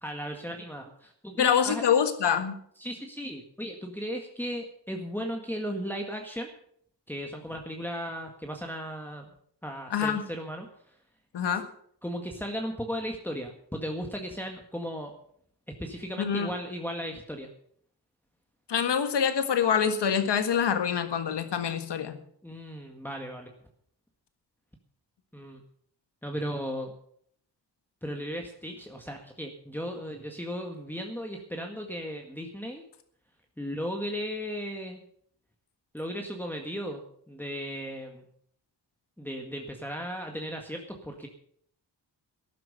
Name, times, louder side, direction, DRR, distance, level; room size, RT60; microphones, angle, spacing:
voice 1, 0.0-1.8 2.8-6.5 7.1-9.3 9.6-11.0 12.0-15.1 15.7-17.5 22.4-23.5 25.3-25.6 26.2-26.9 28.0-32.8 33.6-35.0 35.9-37.0 37.3-38.3 39.2-41.3, equal, 5° left, 2 dB, 1.8 m, -36 dB
voice 2, 1.4-2.6 9.9-10.2 11.3-11.6 16.2-16.5 18.7-22.2, left 7 dB, 80° left, 8 dB, 1.7 m, -25 dB
13.0 x 10.5 x 6.7 m, 0.65 s
cardioid pair, 80°, 42 cm